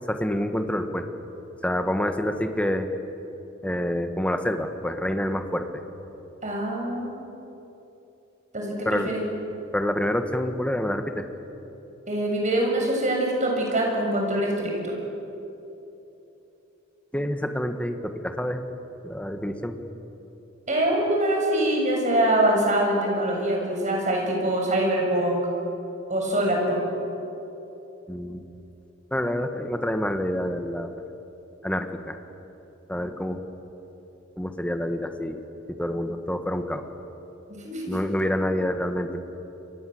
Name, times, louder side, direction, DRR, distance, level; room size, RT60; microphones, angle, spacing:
voice 1, 0.1-1.0 1.6-2.9 3.6-5.7 8.8-9.1 9.7-11.3 17.1-18.6 19.0-19.8 28.1-28.4 29.1-31.0 31.6-32.2 32.9-33.4 34.3-35.4 35.7-36.8 37.9-39.2, left 1 dB, 5° left, 7 dB, 1.6 m, -27 dB
voice 2, 6.4-7.3 8.5-9.2 12.1-14.9 20.7-25.4 26.1-26.9 37.6-38.0, right 1 dB, 40° right, 0 dB, 7.1 m, -24 dB
29.5 x 24.0 x 7.9 m, 3.0 s
head